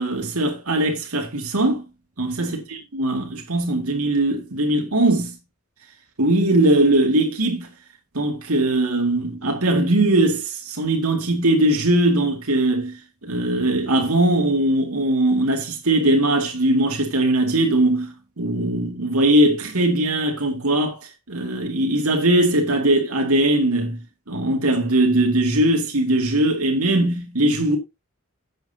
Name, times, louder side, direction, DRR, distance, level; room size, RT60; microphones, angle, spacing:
voice 1, 0.0-1.9 2.2-5.4 6.2-7.7 8.1-27.8, right 1 dB, 75° right, 2.2 m, -20 dB
11.0 x 8.0 x 2.8 m
head